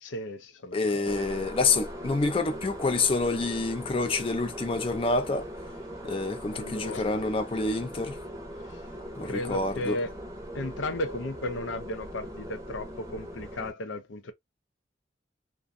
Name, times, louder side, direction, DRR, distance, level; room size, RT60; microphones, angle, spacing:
voice 1, 0.0-1.1 6.5-7.2 8.6-8.8 9.2-10.2 10.5-14.3, left 1 dB, 85° left, 0.6 m, -35 dB
voice 2, 0.7-5.5 6.0-8.2 9.2-10.0, left 3 dB, 30° left, 0.4 m, -27 dB
sound 1, 1.0-13.7, equal, 15° right, 0.6 m, -40 dB
2.5 x 2.2 x 2.4 m
head